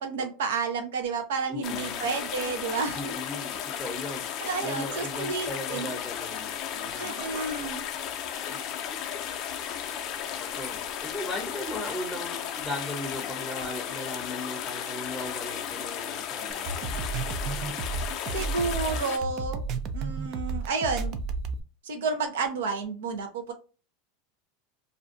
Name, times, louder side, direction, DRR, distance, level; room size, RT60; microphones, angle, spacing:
voice 1, 0.0-3.1 4.4-6.0 7.0-7.8 18.3-19.6 19.9-21.2 21.8-23.5, right 4 dB, 85° right, 6 dB, 0.6 m, -31 dB
voice 2, 1.5-2.1 2.9-7.2 8.5-8.6 10.4-17.0, left 1 dB, 5° left, 0 dB, 0.6 m, -37 dB
sound 1, 1.6-19.2, left 9 dB, 45° left, 0.4 m, -34 dB
sound 2, 16.5-21.6, right 4 dB, 45° right, 0.4 m, -32 dB
2.5 x 2.2 x 2.5 m, 0.33 s
supercardioid pair, 130°, 0 cm